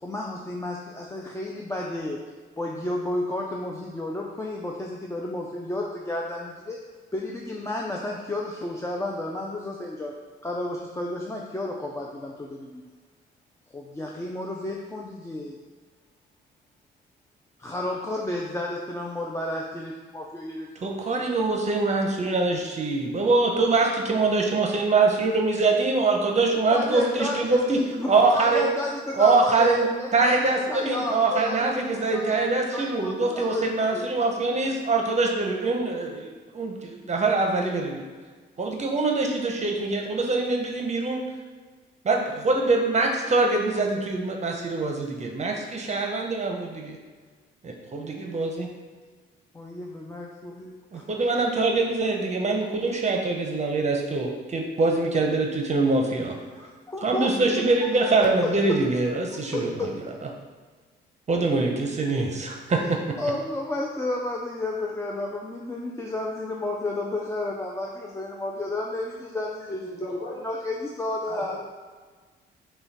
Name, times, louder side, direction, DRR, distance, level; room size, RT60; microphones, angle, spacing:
voice 1, 0.0-2.3 2.6-6.8 7.1-10.1 10.4-12.8 13.7-15.6 17.6-21.0 26.7-32.2 32.7-34.0 49.5-51.0 56.5-57.5 57.8-58.8 59.5-59.9 62.6-62.9 63.2-71.6, left 2 dB, 15° left, -1 dB, 0.4 m, -32 dB
voice 2, 20.8-27.8 28.1-28.6 29.2-29.9 30.1-36.3 36.5-38.0 38.6-41.2 42.0-47.0 47.6-48.7 50.9-56.3 57.0-59.9 61.3-63.0, right 3 dB, 35° right, 1 dB, 0.7 m, -24 dB
voice 3, 69.8-70.4 71.3-71.6, left 2 dB, 50° left, -3 dB, 1.4 m, -37 dB
5.5 x 2.3 x 4.1 m, 1.5 s
cardioid pair, 90°, 20 cm